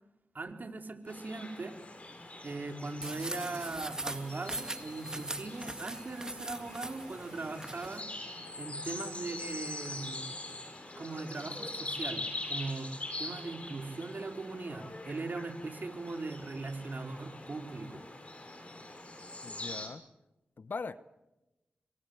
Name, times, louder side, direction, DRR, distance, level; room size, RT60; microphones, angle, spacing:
voice 1, 0.3-1.8 2.4-8.1 8.6-10.2 11.0-12.9 13.2-18.0, right 3 dB, 55° right, 5 dB, 4.2 m, -40 dB
sound 1, 1.1-19.9, left 2 dB, 35° left, 7.8 m, -43 dB
sound 2, 3.0-8.0, right 1 dB, 20° right, 2.1 m, -41 dB
voice 2, 19.4-20.0 20.6-21.0, left 4 dB, 60° left, 14 dB, 1.0 m, -40 dB
29.5 x 24.0 x 8.1 m, 1.0 s
cardioid pair, 50°, 4 cm